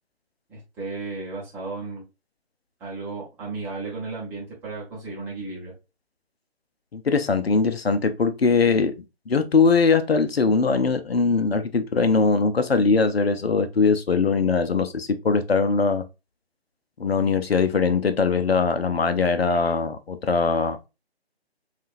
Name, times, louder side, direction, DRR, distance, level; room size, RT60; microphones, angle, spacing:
voice 1, 0.5-2.0 2.8-5.7, right 3 dB, 5° right, 0.8 m, -34 dB
voice 2, 6.9-8.9 9.3-16.0 17.0-20.9, left 4 dB, 65° left, 0.8 m, -21 dB
7.3 x 2.5 x 2.4 m
figure-of-eight pair, 145°, 32 cm